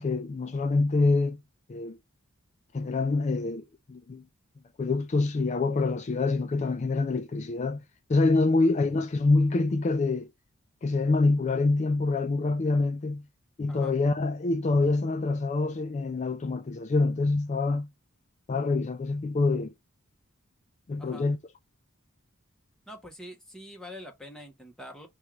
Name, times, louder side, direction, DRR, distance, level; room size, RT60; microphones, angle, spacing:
voice 1, 0.0-1.4 1.7-2.0 2.7-4.2 4.8-7.8 8.1-10.3 10.8-13.2 13.6-17.9 18.5-19.7 20.9-21.4, left 3 dB, 30° left, 0.3 m, -26 dB
voice 2, 22.9-25.1, left 1 dB, 5° left, 0.9 m, -45 dB
5.4 x 2.4 x 3.1 m
head